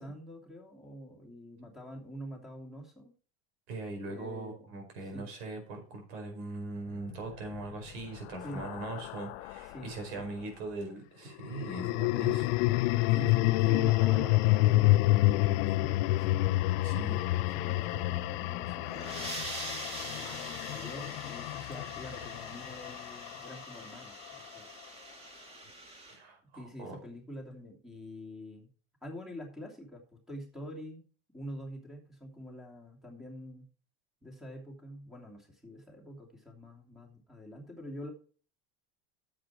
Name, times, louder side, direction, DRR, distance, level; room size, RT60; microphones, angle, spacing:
voice 1, 0.0-3.1 4.1-4.7 5.1-5.3 8.4-8.6 9.7-10.2 13.1-16.5 17.0-19.6 20.0-24.6 26.6-28.7 29.0-31.1 31.3-33.6 34.2-38.1, equal, ahead, 1 dB, 2.9 m, -45 dB
voice 2, 3.7-12.6 16.8-17.2 26.1-27.0, right 2 dB, 85° right, 3 dB, 4.9 m, -41 dB
sound 1, 7.3-9.8 11.4-23.7, left 18 dB, 65° left, 0.7 m, -29 dB
sound 2, 18.7-26.2, right 2 dB, 20° right, 2.6 m, -44 dB
9.9 x 7.6 x 4.5 m, 0.40 s
supercardioid pair, 145°, 31 cm